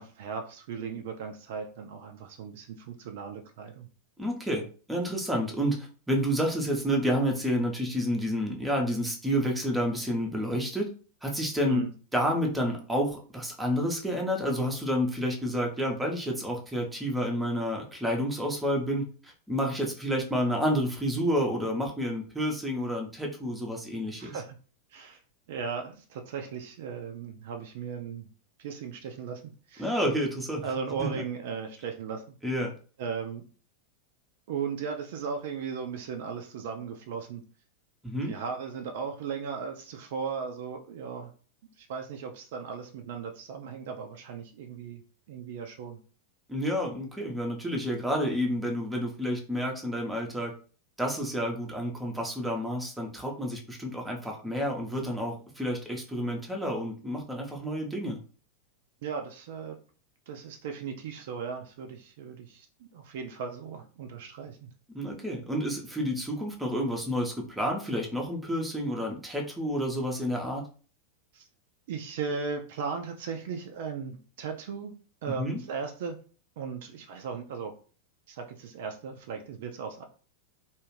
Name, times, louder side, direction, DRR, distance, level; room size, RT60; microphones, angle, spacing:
voice 1, 0.0-3.9 11.7-11.9 24.2-24.6 24.9-25.2 25.5-28.3 28.6-30.0 30.6-32.4 33.0-33.4 34.5-37.4 38.3-41.3 41.8-45.0 45.3-46.0 59.0-59.8 60.3-64.7 71.3-71.5 71.9-74.9 75.2-76.2 76.6-77.7 78.3-80.0, right 6 dB, 55° right, 5 dB, 0.3 m, -37 dB
voice 2, 4.2-10.9 11.2-11.8 12.1-24.4 29.8-30.6 31.0-31.2 32.4-32.7 38.0-38.3 46.5-50.5 51.0-58.2 64.9-70.6 75.4-75.6, equal, 5° right, 0 dB, 0.6 m, -29 dB
2.4 x 2.3 x 3.1 m, 0.39 s
figure-of-eight pair, 90°, 0 cm